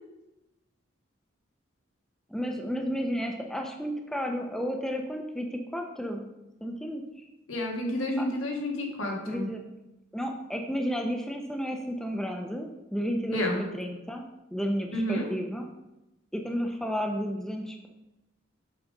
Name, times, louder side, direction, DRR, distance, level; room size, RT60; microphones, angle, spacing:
voice 1, 2.3-6.3 6.6-7.2 8.2-8.3 9.3-9.6 10.1-14.2 14.5-15.7 16.3-17.9, equal, 5° left, 2 dB, 0.5 m, -32 dB
voice 2, 7.5-9.5 13.3-13.6 14.9-15.3, left 1 dB, 85° left, 0 dB, 1.6 m, -30 dB
7.1 x 4.0 x 5.2 m, 0.97 s
head